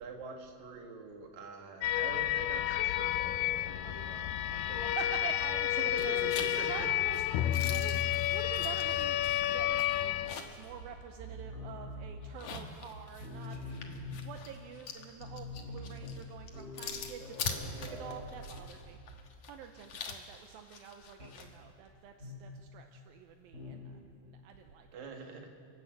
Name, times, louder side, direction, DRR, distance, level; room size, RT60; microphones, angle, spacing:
voice 1, 0.0-5.0 5.8-6.9 24.9-25.5, right 4 dB, 55° right, 2 dB, 2.8 m, -45 dB
sound 1, 1.8-10.4, left 13 dB, 80° left, 2.0 m, -31 dB
voice 2, 3.8-4.1 4.7-6.2 6.6-13.6 14.1-17.4 17.8-25.0, right 8 dB, 80° right, 5 dB, 2.4 m, -47 dB
sound 2, 5.3-5.7 6.0-10.7 11.1-11.2 12.2-21.5, left 5 dB, 60° left, 1.7 m, -44 dB
sound 3, 10.6-12.9 13.2-14.5 14.9-15.0 15.2-19.3 19.5-19.9 21.2-21.4 22.2-22.6 23.5-23.9, left 2 dB, 20° right, 4.3 m, -45 dB
29.5 x 11.0 x 8.1 m, 2.4 s
omnidirectional pair, 4.5 m